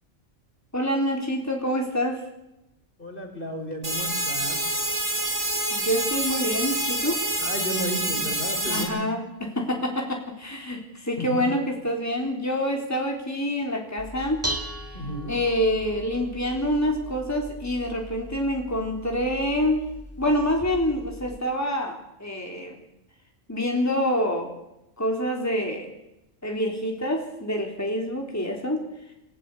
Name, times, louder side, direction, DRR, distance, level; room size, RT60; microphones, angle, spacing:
voice 1, 0.7-2.2 5.7-7.2 8.7-14.7 15.3-19.8 20.2-22.8 23.5-24.5 25.0-25.9 26.4-28.8, equal, 10° left, 1 dB, 3.6 m, -26 dB
voice 2, 3.0-4.6 7.4-9.0 11.2-11.5 14.9-15.3, equal, 40° left, 5 dB, 4.6 m, -33 dB
sound 1, 3.8-8.8, right 1 dB, 75° right, 5.6 m, -27 dB
Dishes pots and pans, 14.0-21.4, equal, 10° right, 2.1 m, -38 dB
28.5 x 17.0 x 8.4 m, 0.87 s
omnidirectional pair, 1.4 m